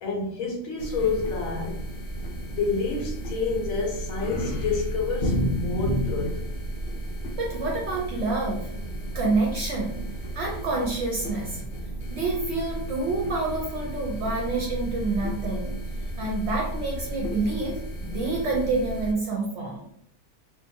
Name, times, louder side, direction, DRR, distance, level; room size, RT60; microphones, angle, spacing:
voice 1, 0.0-1.8 2.4-6.4, left 4 dB, 70° left, 0.9 m, -28 dB
sound 1, 0.8-19.1, right 1 dB, 90° left, 0.4 m, -32 dB
voice 2, 7.4-8.8 9.1-10.0 10.3-11.6 12.1-15.7 16.2-19.8, right 3 dB, 60° right, 0.7 m, -28 dB
2.6 x 2.2 x 2.6 m
omnidirectional pair, 1.6 m